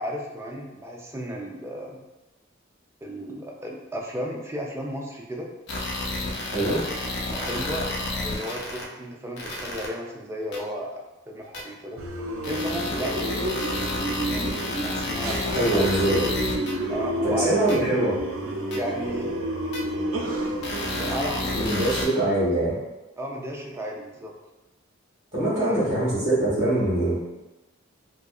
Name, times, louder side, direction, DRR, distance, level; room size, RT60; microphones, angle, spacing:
voice 1, 0.0-2.0 3.0-5.5 6.6-6.8 7.3-11.0 11.3-12.0 12.4-13.7 14.3-16.0 16.9-17.5 18.7-19.3 20.9-21.8 23.2-24.3 25.4-25.9, equal, 15° right, -1 dB, 0.3 m, -34 dB
sound 1, 5.7-8.8 9.4-9.9 10.5-10.6 11.5-11.6 12.4-16.7 17.7-17.8 18.7-18.8 19.7-19.8 20.6-22.1, left 2 dB, 60° left, 0.4 m, -30 dB
sound 2, 12.0-21.6, right 1 dB, 85° right, 0.4 m, -30 dB
voice 2, 15.4-16.2 17.2-18.1 21.5-22.7 25.3-27.2, right 1 dB, 35° right, -9 dB, 1.2 m, -23 dB
2.6 x 2.3 x 2.3 m, 1.1 s
head